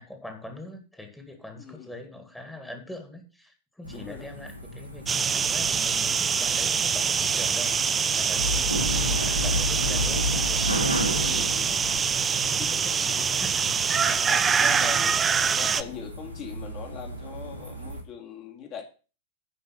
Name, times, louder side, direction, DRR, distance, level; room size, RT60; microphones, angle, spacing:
voice 1, 0.0-10.3 13.4-13.8 14.5-15.0, left 1 dB, 5° left, 4 dB, 2.1 m, -42 dB
voice 2, 1.6-1.9 3.9-4.3 8.6-8.7 11.2-11.8 12.4-13.3 13.9-15.2 15.5-18.8, left 8 dB, 35° left, 2 dB, 2.6 m, -41 dB
sound 1, 3.8-18.0, left 1 dB, 90° right, 2.5 m, -33 dB
sound 2, 5.1-15.8, right 6 dB, 20° right, 0.6 m, -25 dB
9.8 x 5.1 x 7.5 m, 0.35 s
figure-of-eight pair, 90°, 0 cm